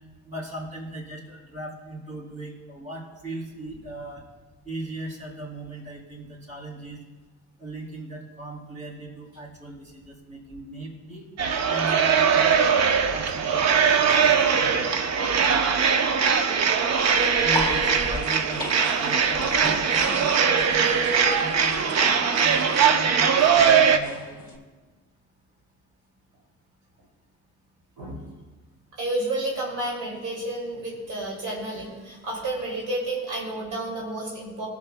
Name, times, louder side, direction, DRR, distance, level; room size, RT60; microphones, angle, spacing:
voice 1, 0.2-4.2 4.6-7.0 7.6-11.3 11.7-12.6 13.1-15.5 17.4-20.9 21.4-21.8 22.4-24.6, right 2 dB, 25° right, -3 dB, 3.1 m, -38 dB
sound 1, 11.4-24.0, right 6 dB, 60° right, 0.7 m, -21 dB
sound 2, 16.9-24.6, left 2 dB, 15° left, 2.7 m, -37 dB
voice 2, 28.9-34.7, right 1 dB, 80° right, -3 dB, 2.5 m, -31 dB
18.5 x 7.3 x 2.2 m, 1.3 s
cardioid pair, 90°, 30 cm